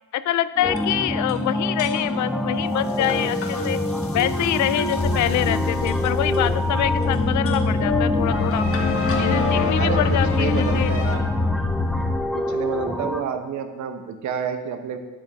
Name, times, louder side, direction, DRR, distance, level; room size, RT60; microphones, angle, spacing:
voice 1, 0.1-3.8 4.1-8.7 9.2-10.9, left 13 dB, 70° left, 15 dB, 0.5 m, -25 dB
sound 1, 0.5-11.2, left 3 dB, 50° left, 1.3 m, -29 dB
sound 2, 0.6-13.2, equal, ahead, 0.6 m, -27 dB
sound 3, 5.0-12.2, left 3 dB, 25° left, 0.9 m, -25 dB
voice 2, 10.3-11.3 12.3-15.0, right 7 dB, 70° right, 7 dB, 1.0 m, -29 dB
9.3 x 8.1 x 3.5 m, 1.2 s
cardioid pair, 90°, 30 cm